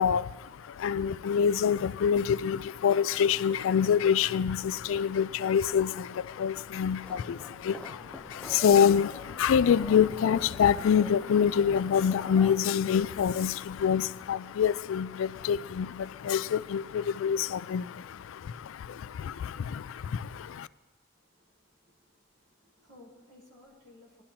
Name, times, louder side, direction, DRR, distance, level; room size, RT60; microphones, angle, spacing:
voice 1, 0.0-20.7, left 7 dB, 75° left, 0.3 m, -26 dB
sound 1, 7.0-12.6, equal, 5° left, 0.5 m, -46 dB
voice 2, 21.2-21.5 21.8-24.2, left 2 dB, 65° right, 4.5 m, -57 dB
20.0 x 12.0 x 2.9 m
head